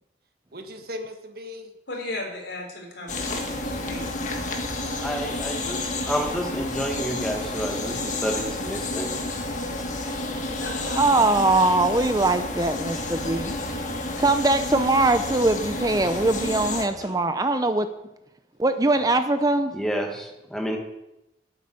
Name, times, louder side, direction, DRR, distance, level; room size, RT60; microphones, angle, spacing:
voice 1, 0.5-1.7 10.7-11.7, left 1 dB, 55° right, 6 dB, 1.5 m, -39 dB
voice 2, 1.9-4.1 6.3-6.4 10.6-11.4 17.0-17.2, left 2 dB, 80° left, 0 dB, 4.0 m, -36 dB
sound 1, 3.1-16.9, left 2 dB, 45° left, 1.7 m, -30 dB
voice 3, 4.9-9.1 19.7-20.8, equal, 5° left, 0 dB, 2.0 m, -30 dB
voice 4, 11.0-13.5 14.2-17.9 18.6-19.7, right 2 dB, 20° right, 9 dB, 0.6 m, -21 dB
9.4 x 8.0 x 9.5 m, 0.89 s
head